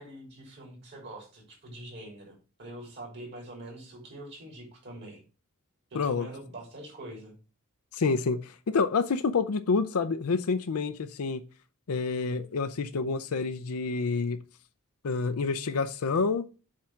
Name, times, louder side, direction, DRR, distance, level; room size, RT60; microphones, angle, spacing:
voice 1, 0.0-5.2 5.9-7.3, right 1 dB, 50° right, 3.3 m, -44 dB
voice 2, 5.9-6.3 7.9-11.4 11.9-14.4 15.0-16.4, left 4 dB, 75° left, 0.5 m, -28 dB
7.4 x 3.7 x 5.8 m
head